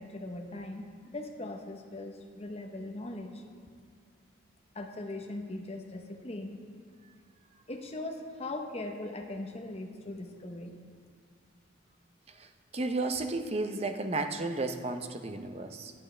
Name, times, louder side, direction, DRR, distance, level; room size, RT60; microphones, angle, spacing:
voice 1, 0.0-3.4 4.7-6.6 7.7-10.8, left 2 dB, 30° left, 3 dB, 0.9 m, -40 dB
voice 2, 12.7-15.9, right 2 dB, 30° right, 7 dB, 0.6 m, -33 dB
17.5 x 10.0 x 3.3 m, 2.1 s
head